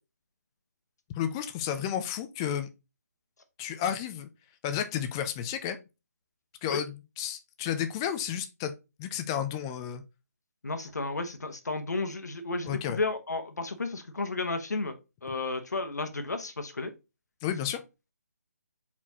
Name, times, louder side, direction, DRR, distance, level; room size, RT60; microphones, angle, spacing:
voice 1, 1.1-2.7 3.6-4.3 4.6-5.8 6.6-8.7 9.0-10.0 12.7-13.0 17.4-17.8, left 9 dB, 15° left, 0.4 m, -32 dB
voice 2, 10.6-16.9, left 3 dB, 75° left, 1.0 m, -33 dB
4.5 x 4.2 x 2.8 m
figure-of-eight pair, 155°, 9 cm